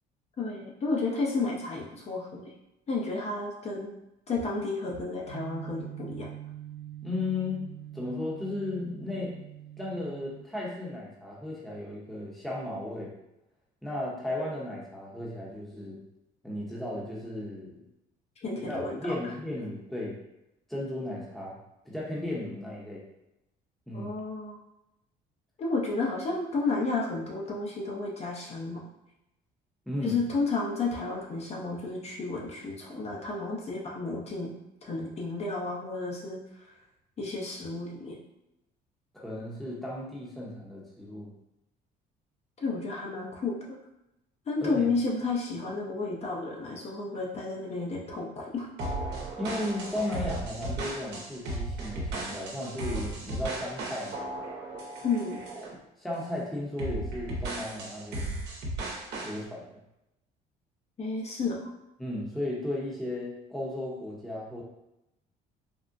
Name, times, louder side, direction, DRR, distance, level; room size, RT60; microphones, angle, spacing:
voice 1, 0.4-2.5 2.9-3.9 4.3-6.3 18.4-19.0 23.9-24.6 25.6-28.8 30.0-34.5 34.8-36.4 37.2-38.2 42.6-43.8 44.5-48.7 55.0-55.4 61.0-61.7, left 3 dB, 40° left, -2 dB, 0.7 m, -32 dB
sound 1, 5.3-10.4, right 12 dB, 80° left, 1.0 m, -44 dB
voice 2, 7.0-9.3 9.8-13.2 13.8-16.0 16.4-17.8 18.6-20.2 20.7-21.6 21.8-23.0 23.9-24.1 29.9-30.2 39.1-41.3 44.6-44.9 49.4-54.3 56.0-58.4 59.2-59.8 62.0-64.6, left 1 dB, ahead, -5 dB, 0.8 m, -35 dB
sound 2, 48.8-55.7 56.1-56.4 56.8-59.4, right 2 dB, 80° right, 0.8 m, -35 dB
3.7 x 2.1 x 2.5 m, 0.88 s
cardioid pair, 110°, 17 cm